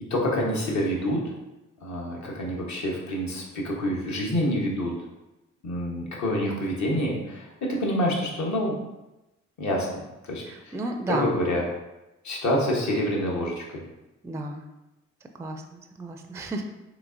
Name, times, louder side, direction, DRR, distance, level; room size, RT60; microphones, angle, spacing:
voice 1, 0.1-1.3 1.8-5.0 5.6-8.8 9.6-10.7 11.1-11.6 12.2-13.8, equal, 55° left, -2 dB, 1.0 m, -27 dB
voice 2, 10.4-11.3 14.2-14.6 15.3-16.6, right 2 dB, 10° right, 5 dB, 0.3 m, -32 dB
3.7 x 2.9 x 2.5 m, 0.99 s
hypercardioid pair, 40°, 33 cm